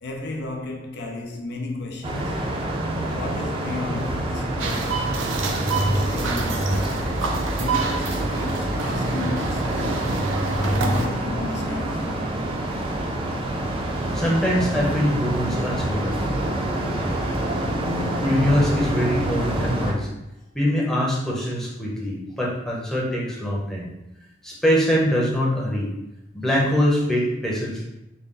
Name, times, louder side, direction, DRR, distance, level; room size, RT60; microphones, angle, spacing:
voice 1, 0.0-2.5 3.1-5.0 5.6-7.1 7.5-10.0 10.6-12.3, left 2 dB, 60° left, 0.5 m, -34 dB
sound 1, 2.0-19.9, right 1 dB, 30° right, 0.5 m, -27 dB
sound 2, 4.6-11.1, right 3 dB, 90° right, 0.5 m, -27 dB
voice 2, 13.9-16.2 18.2-20.1 20.5-23.9 24.4-25.9 26.3-27.9, equal, ahead, 0.7 m, -23 dB
3.8 x 2.1 x 3.7 m
head